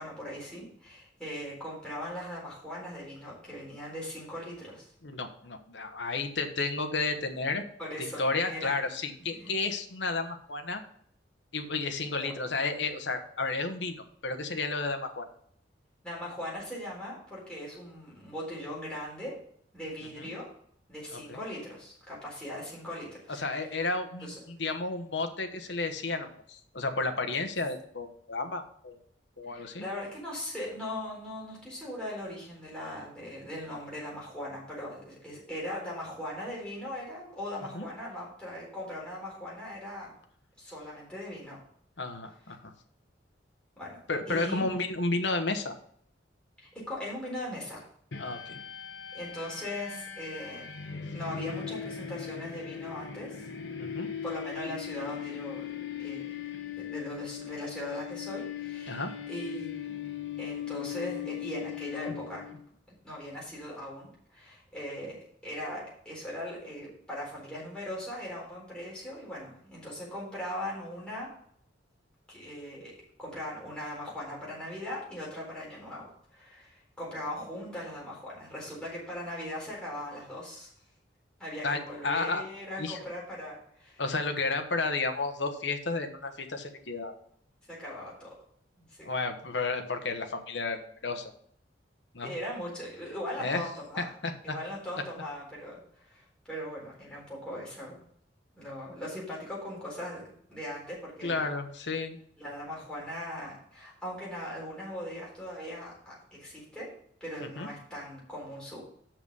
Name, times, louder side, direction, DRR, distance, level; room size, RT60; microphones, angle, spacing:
voice 1, 0.0-4.9 7.8-8.7 9.4-9.5 12.2-12.4 16.0-19.3 19.7-20.5 20.9-23.4 24.2-24.4 29.5-40.1 40.6-41.6 43.8-44.0 44.3-44.7 46.6-47.8 48.3-48.4 49.1-50.7 51.1-53.5 54.2-56.3 56.8-60.0 60.4-62.4 63.0-71.3 72.3-72.9 73.2-80.7 81.4-84.0 87.7-88.4 88.8-89.0 92.2-94.1 94.4-98.0 98.6-100.2 100.5-101.5 102.4-106.9 107.2-108.8, left 1 dB, 5° left, -6 dB, 4.2 m, -39 dB
voice 2, 5.0-7.6 8.2-10.8 11.5-15.3 20.2-20.3 21.1-21.4 23.3-29.0 29.4-29.8 37.7-37.9 42.0-42.7 44.1-45.8 48.2-48.6 53.8-54.1 58.9-59.1 81.6-82.4 82.8-83.0 84.0-87.1 89.0-91.3 92.1-92.3 93.4-93.7 94.2-94.5 101.2-102.2 107.6-107.7, left 3 dB, 70° left, 6 dB, 1.1 m, -32 dB
sound 1, 48.1-62.6, left 8 dB, 85° left, 0.9 m, -39 dB
6.8 x 5.9 x 6.8 m, 0.64 s
head